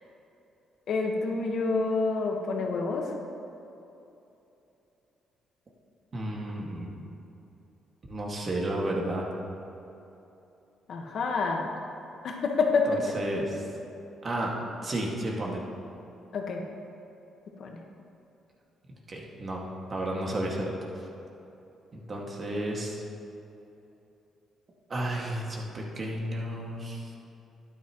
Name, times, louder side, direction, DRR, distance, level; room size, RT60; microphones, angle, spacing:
voice 1, 0.9-3.1 10.9-11.6 12.2-13.2 16.3-16.6 17.6-17.8, left 3 dB, 65° left, 1 dB, 1.4 m, -28 dB
voice 2, 6.1-6.9 8.1-9.3 12.9-13.5 14.2-15.7 19.1-21.1 21.9-23.0 24.9-27.1, right 1 dB, 40° right, -2 dB, 2.1 m, -32 dB
12.0 x 9.9 x 3.1 m, 2.9 s
cardioid pair, 90°, 0 cm